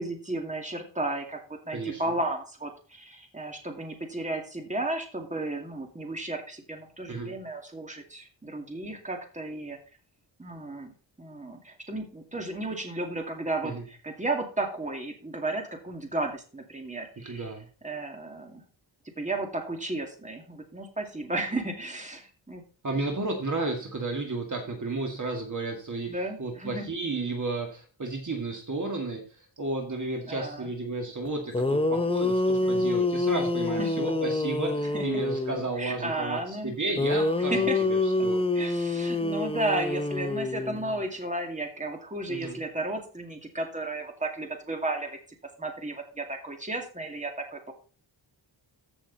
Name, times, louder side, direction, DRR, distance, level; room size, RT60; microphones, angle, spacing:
voice 1, 0.0-1.4 1.7-9.8 10.4-17.5 17.8-18.6 19.2-22.6 26.1-26.8 30.3-30.7 32.6-33.0 33.8-33.9 34.9-35.2 35.8-36.7 37.5-37.8 38.5-45.2 45.6-47.7, right 2 dB, 15° right, 3 dB, 2.2 m, -33 dB
voice 2, 7.1-7.4 13.6-13.8 17.2-17.7 22.8-38.4 42.3-42.6, right 2 dB, 40° right, 3 dB, 1.9 m, -33 dB
sound 1, 31.2-31.3 31.5-35.7 37.0-41.0, left 2 dB, 15° left, 0.6 m, -27 dB
14.5 x 6.3 x 4.0 m, 0.38 s
wide cardioid pair, 145°, 46 cm